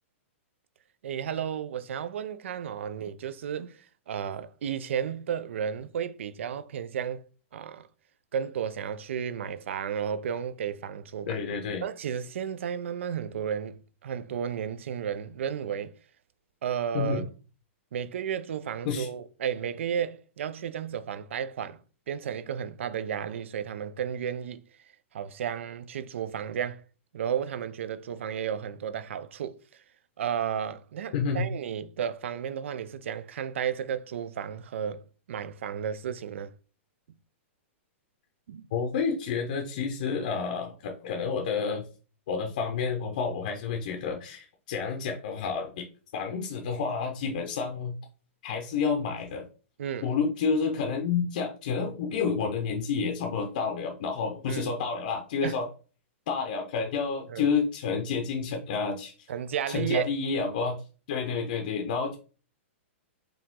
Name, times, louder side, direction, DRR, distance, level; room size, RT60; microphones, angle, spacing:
voice 1, 1.0-7.3 7.5-7.9 8.3-11.4 11.8-15.9 16.6-17.2 17.9-21.8 22.1-24.6 25.1-26.8 27.1-29.8 30.2-36.5 38.5-38.6 49.8-50.2 54.5-54.7 55.4-55.6 57.3-57.5 59.3-60.1, right 8 dB, 65° right, 0.5 m, -33 dB
voice 2, 11.3-11.8 16.9-17.3 18.9-19.1 31.1-31.5 38.7-41.8 42.3-45.9 46.1-47.9 48.4-49.5 50.0-55.7 56.3-59.1 59.7-60.8 61.1-62.2, left 5 dB, 40° left, 0.7 m, -29 dB
5.0 x 2.9 x 3.6 m
hypercardioid pair, 175°, 7 cm